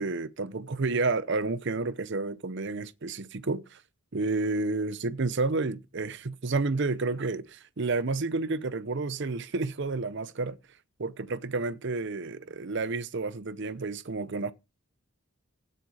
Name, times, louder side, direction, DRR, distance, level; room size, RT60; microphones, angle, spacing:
voice 1, 0.0-3.8 4.1-10.6 11.0-14.5, right 3 dB, 55° right, 0.7 m, -30 dB
16.0 x 6.7 x 4.8 m
head